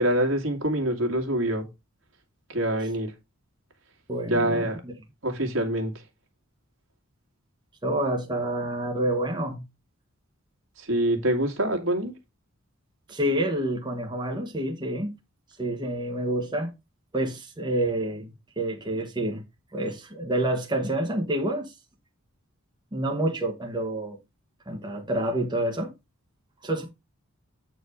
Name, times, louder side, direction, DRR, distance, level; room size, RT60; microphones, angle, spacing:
voice 1, 0.0-1.7 2.5-3.1 4.3-4.8 5.2-6.0 10.8-12.1, right 1 dB, 65° right, 2.2 m, -25 dB
voice 2, 4.1-4.7 7.8-9.7 13.1-15.1 15.6-16.7 17.1-19.4 19.7-21.7 22.9-24.2 24.7-25.9 26.6-26.9, right 1 dB, 20° right, 1.4 m, -28 dB
8.8 x 4.6 x 4.9 m
head